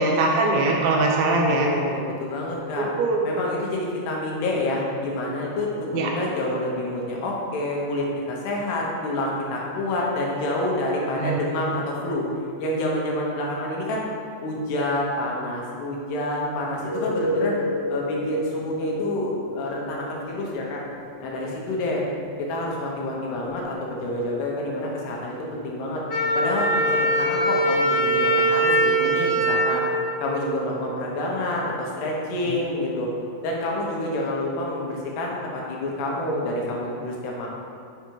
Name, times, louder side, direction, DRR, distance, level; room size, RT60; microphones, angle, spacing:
voice 1, 0.0-1.7 2.8-3.2 5.9-6.1 11.2-11.4, right 2 dB, 80° right, 0 dB, 2.4 m, -22 dB
voice 2, 1.3-2.9 3.3-12.3 12.6-14.0 14.4-17.6 17.9-20.8 21.2-22.0 22.5-26.0 26.4-29.9 30.2-33.1 33.4-37.5, left 1 dB, 85° left, -3 dB, 3.3 m, -28 dB
sound 1, 16.6-28.2 32.5-32.6, left 2 dB, 50° right, 2.3 m, -34 dB
Wind instrument woodwind instrument, 26.1-30.9, right 1 dB, 65° left, 2.1 m, -22 dB
8.0 x 5.2 x 4.7 m, 2.3 s
omnidirectional pair, 4.7 m